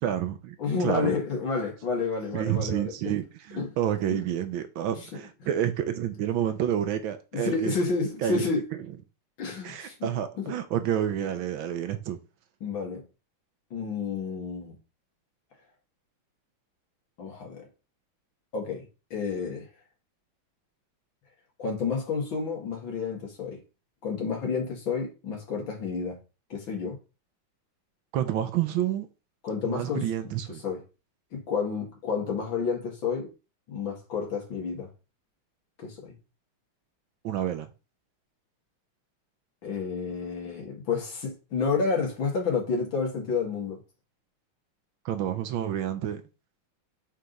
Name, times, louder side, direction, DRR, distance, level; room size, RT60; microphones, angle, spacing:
voice 1, 0.0-1.2 2.3-7.7 8.2-8.4 9.6-12.2 28.1-29.1 29.6-30.6 37.2-37.7 45.0-46.2, right 10 dB, 75° right, 1.4 m, -29 dB
voice 2, 0.6-3.1 3.5-3.7 4.1-4.2 4.9-5.1 7.3-8.6 9.4-10.1 10.4-10.5 12.6-13.0 13.7-14.7 17.2-17.6 18.5-18.9 19.1-19.7 21.6-23.6 24.0-26.2 26.5-27.0 29.4-30.3 30.6-30.8 31.3-33.3 33.7-34.9 35.8-36.1 39.6-43.8, left 5 dB, 65° left, 2.8 m, -30 dB
7.6 x 3.6 x 4.0 m
omnidirectional pair, 2.3 m